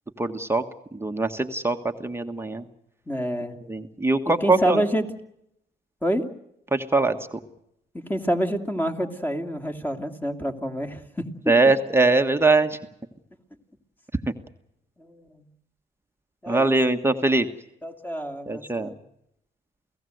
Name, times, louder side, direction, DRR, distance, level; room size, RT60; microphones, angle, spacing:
voice 1, 0.2-0.6 0.9-2.7 3.7-4.8 6.7-7.4 11.5-12.8 16.5-17.5 18.5-18.9, right 3 dB, 10° right, 5 dB, 1.5 m, -22 dB
voice 2, 3.1-3.6 4.4-5.1 6.0-6.2 8.1-11.2 15.0-15.4 16.4-16.8 17.8-18.9, equal, 10° left, 5 dB, 2.7 m, -27 dB
29.0 x 17.0 x 8.0 m, 0.79 s
cardioid pair, 90°, 20 cm